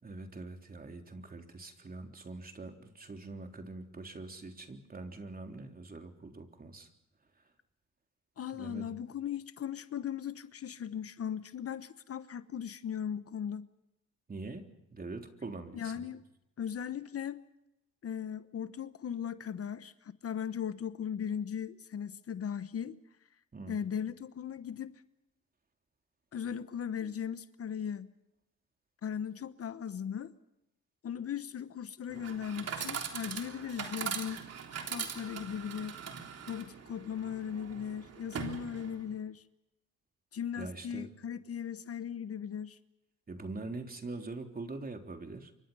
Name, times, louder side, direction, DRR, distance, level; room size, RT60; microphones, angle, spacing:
voice 1, 0.0-6.9 8.5-9.0 14.3-16.1 23.5-23.8 40.6-41.1 43.3-45.5, right 3 dB, 30° right, 3.5 m, -43 dB
voice 2, 8.4-13.7 15.7-16.2 16.6-17.4 18.0-23.0 23.7-25.0 26.3-28.1 29.0-30.3 31.0-34.4 34.8-36.0 36.5-39.4 40.3-42.8, left 8 dB, 50° left, 1.1 m, -38 dB
Chatter / Coin (dropping), 32.1-39.1, right 7 dB, 55° right, 3.4 m, -41 dB
28.5 x 25.0 x 5.6 m
cardioid pair, 90°, 30 cm